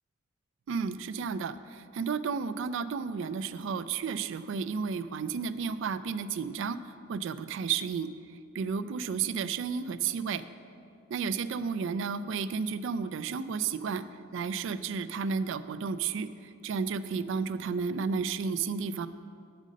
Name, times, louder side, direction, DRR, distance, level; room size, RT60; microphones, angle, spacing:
voice 1, 0.7-6.8 7.1-8.1 8.5-10.4 11.1-14.0 14.3-16.3 16.6-19.1, right 5 dB, 60° right, 14 dB, 0.3 m, -32 dB
7.5 x 5.2 x 6.3 m, 2.5 s
head